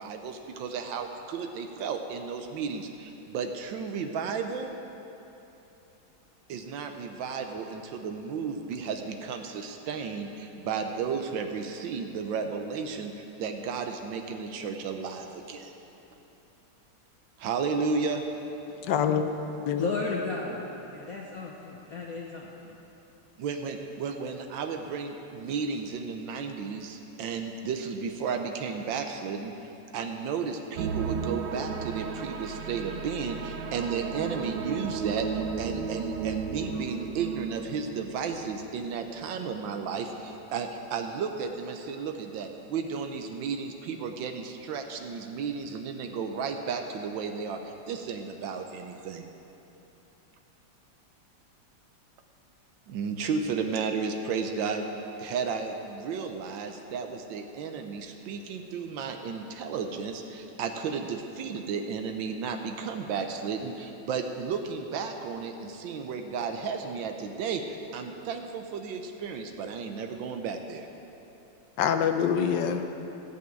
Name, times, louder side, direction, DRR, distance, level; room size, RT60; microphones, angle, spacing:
voice 1, 0.0-4.7 6.5-15.7 17.4-18.2 23.4-29.5 29.9-47.6 47.9-49.3 52.9-54.8 55.2-70.9, right 5 dB, 85° right, 1.5 m, -33 dB
voice 2, 18.8-19.9 71.8-72.8, left 7 dB, 70° left, 1.3 m, -26 dB
voice 3, 19.8-22.7, left 4 dB, 55° left, 1.3 m, -34 dB
sound 1, 30.7-39.0 39.2-39.6 40.1-40.2, right 6 dB, 65° right, 1.3 m, -34 dB
15.0 x 5.6 x 9.0 m
omnidirectional pair, 2.0 m